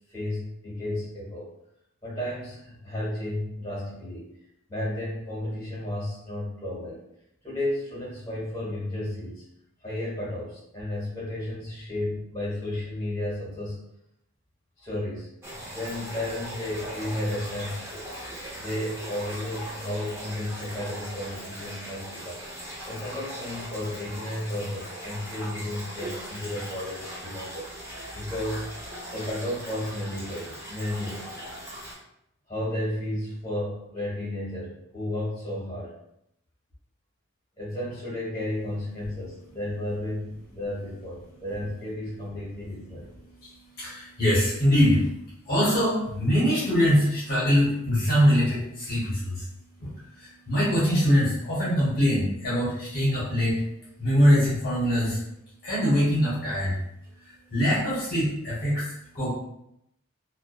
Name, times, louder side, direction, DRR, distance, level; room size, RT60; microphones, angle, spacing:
voice 1, 0.1-1.5 2.0-4.3 4.7-7.0 7.4-9.4 9.8-13.8 14.8-15.3 15.7-18.1 18.6-22.4 22.8-27.7 28.1-28.7 29.1-31.3 32.5-35.9 37.6-43.1, left 1 dB, 15° left, -8 dB, 1.0 m, -33 dB
sound 1, 15.4-31.9, equal, 10° right, 0.5 m, -39 dB
voice 2, 43.4-45.1 45.5-49.4 49.8-49.9 50.2-53.6 54.0-55.2 55.6-56.8 57.2-59.3, equal, 45° left, -8 dB, 0.7 m, -23 dB
2.5 x 2.2 x 2.3 m, 0.79 s
head